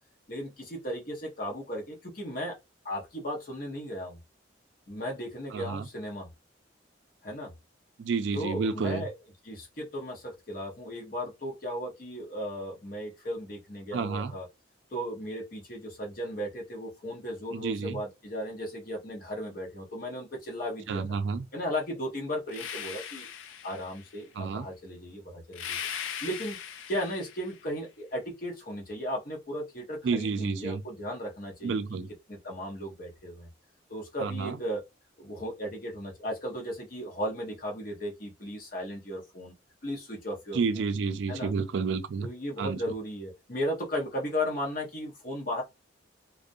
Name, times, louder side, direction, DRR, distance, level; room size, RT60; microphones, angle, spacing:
voice 1, 0.3-2.6 2.8-4.2 4.9-6.3 7.2-7.5 8.3-9.1 9.4-14.5 14.9-21.2 21.5-23.3 23.6-25.9 26.2-26.6 26.9-31.8 32.3-33.5 33.9-34.8 35.2-39.5 39.8-40.9 41.3-41.5 42.2-45.6, equal, 45° left, 0.8 m, -36 dB
voice 2, 5.5-5.9 8.0-9.0 13.9-14.3 17.5-18.0 20.9-21.5 24.3-24.7 30.0-30.8 31.6-32.1 34.2-34.6 40.5-42.3 42.6-42.8, right 5 dB, 65° right, 0.3 m, -30 dB
sound 1, 22.5-24.2 25.5-27.6, left 8 dB, 75° left, 0.3 m, -39 dB
2.4 x 2.0 x 2.6 m
head